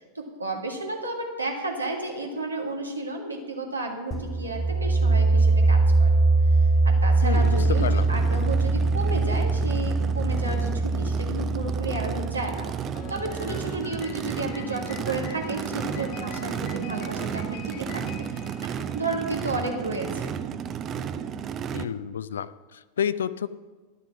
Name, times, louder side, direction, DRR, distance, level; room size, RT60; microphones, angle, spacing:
voice 1, 0.2-6.2 6.5-12.6 13.1-18.3 18.9-20.3, right 2 dB, 80° right, 1 dB, 1.9 m, -32 dB
sound 1, 4.1-13.7, right 3 dB, 20° left, 1.5 m, -22 dB
voice 2, 7.2-8.0 21.7-23.5, left 8 dB, 65° left, 16 dB, 0.4 m, -30 dB
Race car auto racing / Idling / Accelerating revving vroom, 7.3-21.8, right 8 dB, 30° right, 0.5 m, -33 dB
Piano, 12.9-19.5, left 7 dB, 40° left, 1.4 m, -44 dB
11.5 x 7.0 x 6.1 m, 1.3 s
figure-of-eight pair, 90°, 0 cm